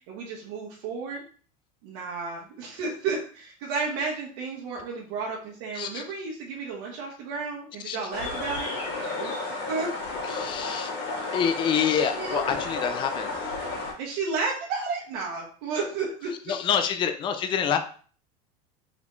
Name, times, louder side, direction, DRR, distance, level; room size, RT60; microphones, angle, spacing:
voice 1, 0.1-1.2 1.8-9.3 9.7-9.9 12.1-12.4 14.0-16.6, right 4 dB, 65° right, -4 dB, 1.2 m, -32 dB
sound 1, 8.1-13.9, left 3 dB, 50° left, 2.1 m, -32 dB
voice 2, 10.3-10.9 11.3-13.4 16.5-17.8, left 8 dB, 25° left, 7 dB, 0.4 m, -26 dB
4.0 x 3.5 x 3.1 m, 0.42 s
supercardioid pair, 130°, 20 cm